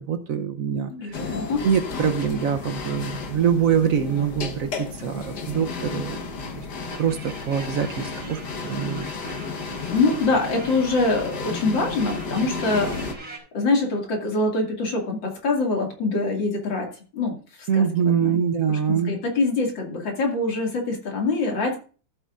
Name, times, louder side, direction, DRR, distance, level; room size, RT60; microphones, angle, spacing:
voice 1, 0.0-1.3 1.6-6.2 6.5-6.7 7.0-9.1 17.7-19.2, right 7 dB, 60° right, 8 dB, 1.0 m, -24 dB
voice 2, 0.9-1.6 9.9-13.2 13.5-16.9 17.1-18.4 18.7-21.8, left 3 dB, 85° left, 1 dB, 3.1 m, -24 dB
sound 1, 1.1-13.1, left 4 dB, 65° left, 1.8 m, -33 dB
sound 2, 6.9-13.4, equal, 20° right, 3.9 m, -41 dB
14.0 x 8.2 x 2.5 m, 0.37 s
omnidirectional pair, 2.0 m